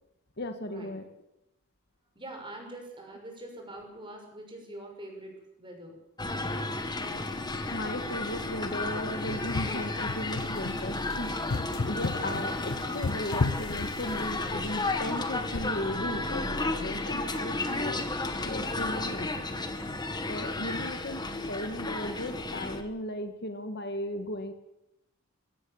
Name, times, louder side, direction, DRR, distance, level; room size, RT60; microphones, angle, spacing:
voice 1, 0.4-1.1 7.7-19.3 20.3-24.5, left 1 dB, 50° left, 7 dB, 1.7 m, -36 dB
voice 2, 2.1-6.0, right 1 dB, 25° right, 2 dB, 6.3 m, -44 dB
sound 1, 6.2-22.8, left 2 dB, 20° left, 1.8 m, -33 dB
sound 2, 9.3-14.6 15.5-15.9, left 3 dB, 80° left, 0.8 m, -34 dB
23.0 x 17.0 x 7.2 m, 0.85 s
head